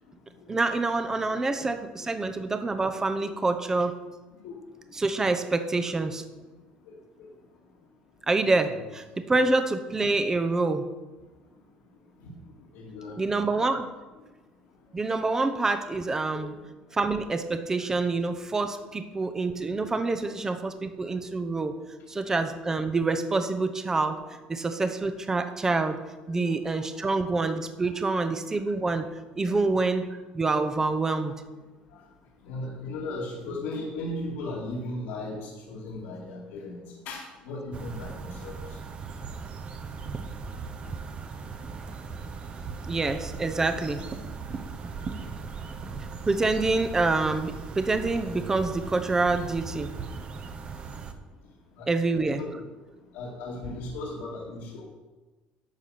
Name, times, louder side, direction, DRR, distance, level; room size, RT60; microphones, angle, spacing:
voice 1, 0.5-4.0 4.9-6.2 8.3-10.9 13.2-13.9 14.9-16.5 16.9-21.7 22.1-24.2 24.5-26.0 26.3-29.1 29.4-31.3 42.9-44.0 46.3-49.9 51.9-52.4, right 3 dB, 15° right, 8 dB, 0.8 m, -26 dB
voice 2, 12.7-13.5 16.3-16.5 19.9-20.3 26.3-26.5 29.5-29.8 31.2-31.3 31.9-32.0 32.4-38.6 51.8-52.6 53.1-54.8, left 2 dB, 90° left, -5 dB, 2.4 m, -37 dB
sound 1, 37.7-51.1, right 5 dB, 35° right, 1.0 m, -38 dB
11.5 x 7.0 x 5.9 m, 1.2 s
cardioid pair, 125°, 3 cm